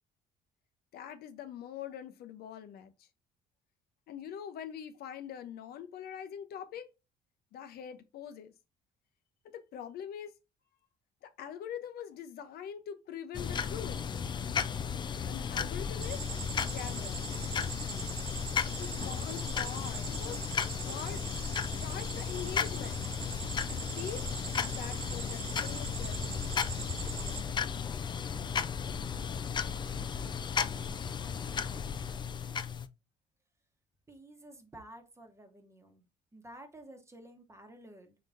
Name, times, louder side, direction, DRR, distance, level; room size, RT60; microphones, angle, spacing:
voice 1, 0.9-3.1 4.1-6.9 7.5-8.5 9.4-10.3 11.2-14.1 15.3-16.3 16.6-17.2 18.8-20.4 20.8-21.3 21.7-23.1 23.7-26.5, left 9 dB, 65° left, 0.7 m, -43 dB
sound 1, 13.3-32.9, left 7 dB, 25° left, 0.4 m, -35 dB
sound 2, 16.0-27.4, right 5 dB, 75° right, 1.6 m, -42 dB
voice 2, 34.1-36.0 36.3-38.2, right 1 dB, 15° right, 1.1 m, -52 dB
4.8 x 3.8 x 2.5 m
cardioid pair, 110°, 17 cm